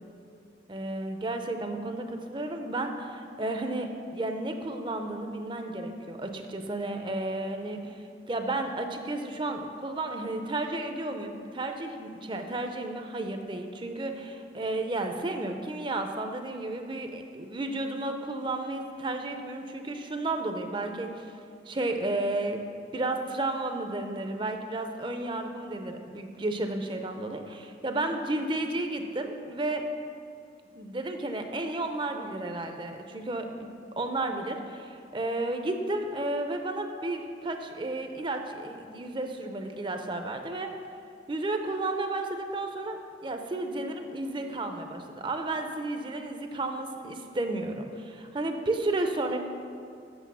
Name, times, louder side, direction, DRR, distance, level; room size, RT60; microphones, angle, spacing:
voice 1, 0.7-8.0 8.3-21.3 21.7-22.6 22.9-29.8 30.7-40.7 41.3-49.4, right 2 dB, 25° right, 5 dB, 0.5 m, -32 dB
8.2 x 6.4 x 6.1 m, 2.4 s
head